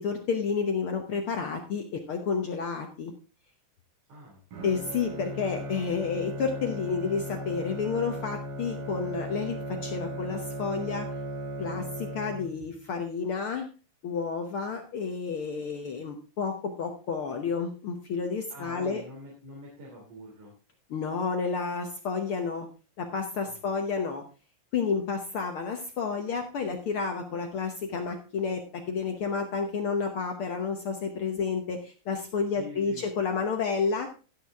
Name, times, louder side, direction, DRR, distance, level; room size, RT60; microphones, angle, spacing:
voice 1, 0.0-3.1 4.6-11.1 11.6-13.7 14.0-19.0 20.9-22.7 23.0-24.2 24.7-34.1, left 5 dB, 80° left, 4 dB, 1.2 m, -30 dB
voice 2, 4.1-4.4 18.5-20.6 23.5-23.6 32.5-33.0, left 1 dB, 60° right, -4 dB, 4.3 m, -44 dB
Bowed string instrument, 4.5-12.8, equal, 90° right, 6.3 m, -37 dB
16.0 x 6.7 x 3.5 m, 0.34 s
omnidirectional pair, 3.9 m